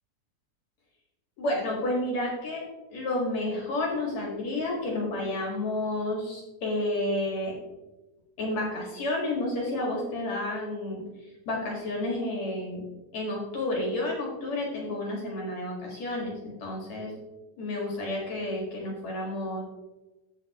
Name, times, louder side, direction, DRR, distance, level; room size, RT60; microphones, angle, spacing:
voice 1, 1.4-2.6 2.9-7.6 8.4-12.8 13.1-17.1 17.6-19.6, left 1 dB, 60° left, -2 dB, 3.0 m, -31 dB
15.0 x 5.7 x 3.0 m, 1.1 s
omnidirectional pair, 3.6 m